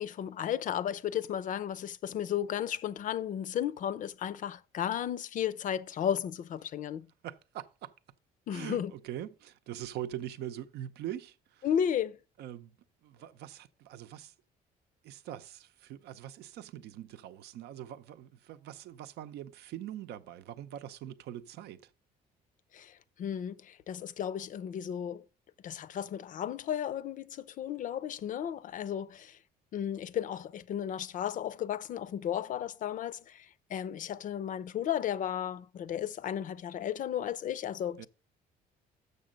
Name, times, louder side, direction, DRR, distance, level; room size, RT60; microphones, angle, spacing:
voice 1, 0.0-7.1 8.5-8.9 11.6-12.2 22.7-25.2 25.6-29.4 29.7-38.1, left 9 dB, 50° left, 0.5 m, -34 dB
voice 2, 7.2-7.9 8.5-11.7 12.4-12.8 13.0-14.3 15.0-21.9 38.0-38.1, right 11 dB, 75° right, 0.6 m, -43 dB
6.8 x 6.5 x 5.1 m
cardioid pair, 110°, 17 cm